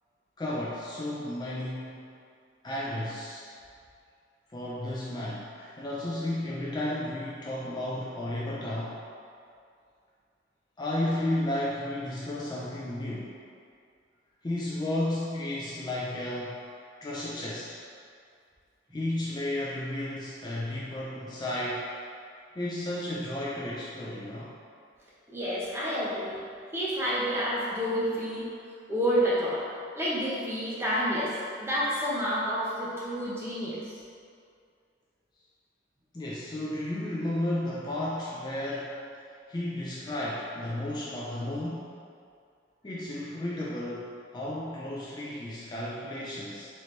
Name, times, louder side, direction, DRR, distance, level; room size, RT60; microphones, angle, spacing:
voice 1, 0.4-2.1 2.6-3.5 4.5-9.0 10.8-13.3 14.4-16.6 17.0-17.8 18.9-21.9 22.6-24.5 36.1-39.0 39.2-41.9 42.8-46.7, left 1 dB, 25° left, -6 dB, 0.4 m, -33 dB
voice 2, 25.3-26.4 26.7-28.5 28.9-29.6 30.0-31.3 31.6-33.8, equal, 15° right, -8 dB, 0.7 m, -29 dB
4.2 x 3.0 x 3.1 m, 2.3 s
head